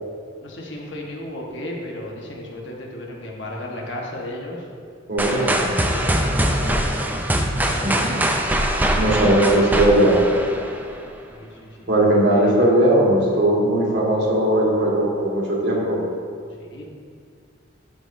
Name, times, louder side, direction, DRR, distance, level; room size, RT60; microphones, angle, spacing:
voice 1, 0.4-4.7 5.6-7.1 7.6-8.0 11.3-11.9 12.3-12.5 16.6-16.8, left 1 dB, 65° left, -2 dB, 1.3 m, -34 dB
voice 2, 5.1-5.7 7.8-8.4 8.9-10.2 11.9-16.0, right 1 dB, 60° right, -4 dB, 1.8 m, -19 dB
sound 1, 5.2-11.1, right 1 dB, 10° right, 0.4 m, -22 dB
12.0 x 5.3 x 2.7 m, 2.2 s
head